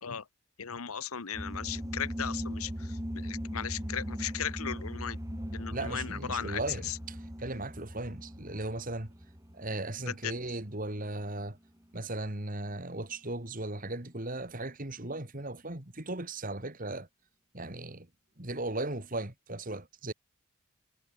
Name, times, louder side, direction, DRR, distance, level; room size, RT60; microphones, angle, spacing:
voice 1, 0.6-5.2 5.5-7.0 10.1-10.3, left 8 dB, 80° left, 1.1 m, -37 dB
sound 1, 1.3-11.3, equal, 15° right, 3.2 m, -39 dB
voice 2, 5.7-9.1 9.5-11.6 11.9-17.1 17.5-18.1 18.4-20.1, right 2 dB, 40° right, 2.6 m, -37 dB
head